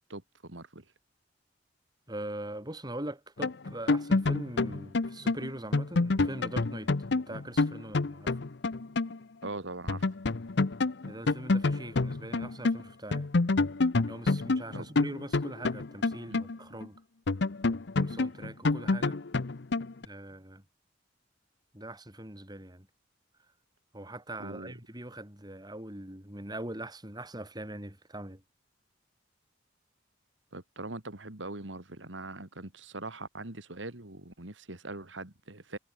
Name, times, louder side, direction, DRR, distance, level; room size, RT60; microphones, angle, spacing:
voice 1, 0.1-0.8 9.4-10.0 14.7-14.9 16.3-16.4 24.4-24.7 30.5-35.8, right 2 dB, 80° right, 2.9 m, -41 dB
voice 2, 2.1-8.4 11.0-13.3 14.1-17.0 18.0-19.2 20.0-20.6 21.7-22.9 23.9-28.4, right 1 dB, 20° right, 4.9 m, -42 dB
sound 1, 3.4-9.2 9.4-9.5 9.9-12.8 13.1-16.9 17.3-20.0, left 3 dB, 65° left, 0.8 m, -28 dB
head